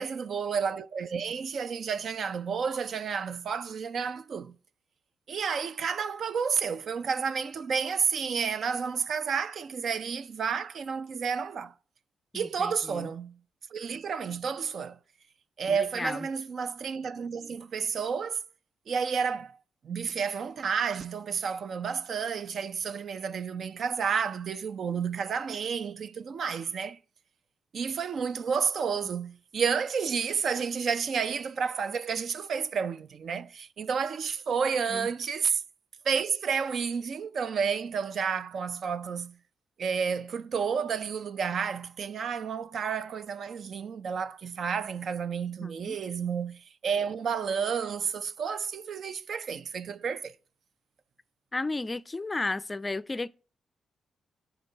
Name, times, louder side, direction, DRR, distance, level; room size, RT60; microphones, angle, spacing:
voice 1, 0.0-4.5 5.3-11.7 12.3-13.4 13.7-15.0 15.6-18.4 18.9-19.6 19.8-27.0 27.7-35.6 36.0-39.4 39.8-50.3, right 6 dB, 65° right, 0.4 m, -31 dB
voice 2, 12.3-13.1 15.7-16.3 34.9-35.1 45.6-46.0 51.5-53.3, left 2 dB, 25° left, 0.4 m, -34 dB
11.0 x 4.0 x 5.4 m
cardioid pair, 70°, 0 cm